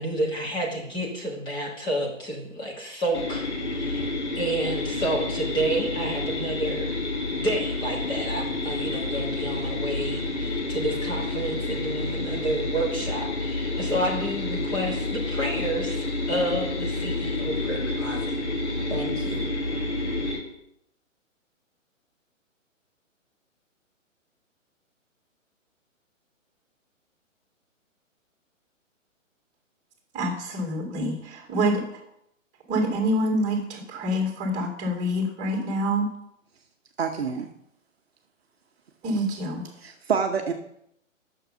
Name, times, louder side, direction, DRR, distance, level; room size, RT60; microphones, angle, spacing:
voice 1, 0.0-6.9 7.3-18.4 18.9-19.5, right 1 dB, 10° left, -3 dB, 1.5 m, -30 dB
sound 1, 3.1-20.4, left 2 dB, 60° left, 2.3 m, -29 dB
voice 2, 30.1-31.9 32.7-36.1 39.0-39.6, equal, 20° right, 0 dB, 2.2 m, -26 dB
voice 3, 37.0-37.5 39.8-40.5, right 6 dB, 50° right, 4 dB, 0.9 m, -27 dB
9.1 x 6.7 x 5.6 m, 0.76 s
figure-of-eight pair, 130°, 39 cm